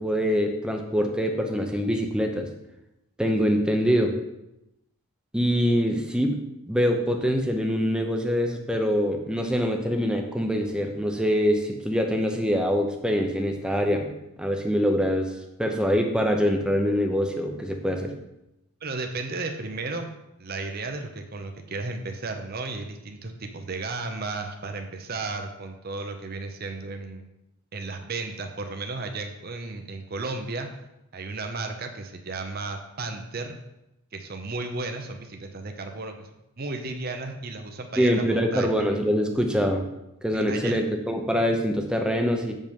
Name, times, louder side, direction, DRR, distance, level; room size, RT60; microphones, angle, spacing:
voice 1, 0.0-2.5 3.2-4.1 5.3-6.4 6.7-14.1 14.4-15.3 15.6-18.1 38.0-39.9 40.2-42.5, equal, 5° right, 3 dB, 0.8 m, -24 dB
voice 2, 18.8-20.1 20.4-27.3 27.7-30.7 31.1-33.5 34.1-36.3 36.6-38.9 40.3-40.8, right 3 dB, 45° right, 5 dB, 0.7 m, -34 dB
7.8 x 5.4 x 5.3 m, 0.90 s
head